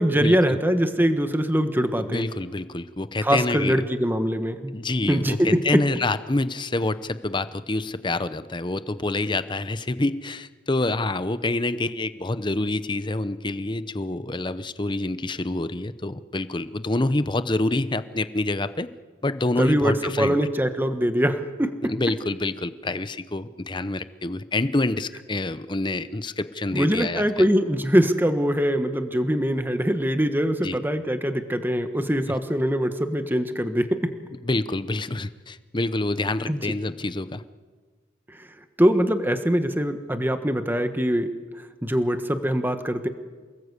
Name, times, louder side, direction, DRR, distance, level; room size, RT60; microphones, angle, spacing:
voice 1, 0.0-2.2 3.2-4.7 5.1-5.6 19.6-21.9 26.7-34.0 36.5-36.6 38.8-41.3 41.8-43.1, equal, 10° right, 8 dB, 1.3 m, -23 dB
voice 2, 2.0-3.9 4.7-18.9 19.2-20.4 21.8-27.5 30.6-30.8 32.3-32.4 34.4-37.4, left 2 dB, 25° left, 13 dB, 0.8 m, -27 dB
28.0 x 19.5 x 8.2 m, 1.5 s
head